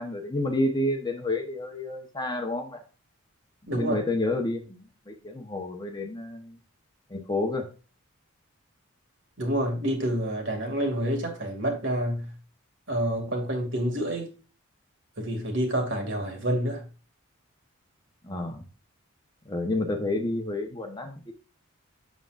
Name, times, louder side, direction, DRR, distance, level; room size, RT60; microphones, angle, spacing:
voice 1, 0.0-2.8 3.7-6.6 7.1-7.7 18.2-18.7 19.4-21.3, left 2 dB, 20° left, 1.0 m, -30 dB
voice 2, 3.7-4.0 9.4-12.3 12.9-14.3 15.2-16.8, right 1 dB, 55° right, 2.4 m, -28 dB
7.8 x 7.2 x 2.5 m
head